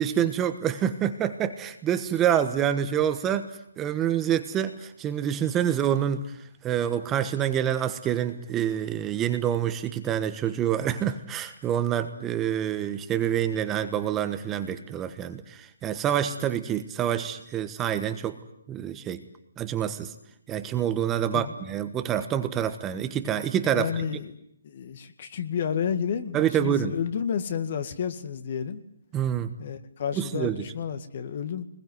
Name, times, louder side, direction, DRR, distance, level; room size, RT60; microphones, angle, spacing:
voice 1, 0.0-3.5 3.8-6.3 6.6-18.4 18.7-19.2 19.6-20.1 20.5-23.9 26.3-26.9 29.1-29.5 30.2-30.5, right 10 dB, 15° right, 9 dB, 1.3 m, -27 dB
voice 2, 23.7-28.8 29.6-31.6, left 7 dB, 45° left, 9 dB, 2.0 m, -31 dB
23.0 x 21.0 x 9.4 m, 0.74 s
figure-of-eight pair, 150°, 0 cm